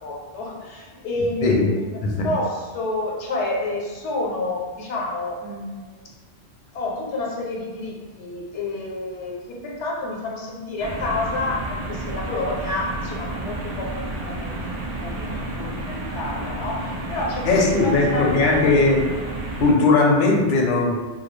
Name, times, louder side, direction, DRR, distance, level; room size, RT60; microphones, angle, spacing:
voice 1, 0.0-6.1 6.7-18.8, left 2 dB, 85° left, -2 dB, 0.9 m, -29 dB
sound 1, 10.8-19.7, right 2 dB, 60° right, 0.4 m, -31 dB
voice 2, 17.5-19.1 19.6-20.9, left 3 dB, 60° left, -1 dB, 0.6 m, -18 dB
2.2 x 2.2 x 3.0 m, 1.4 s
omnidirectional pair, 1.1 m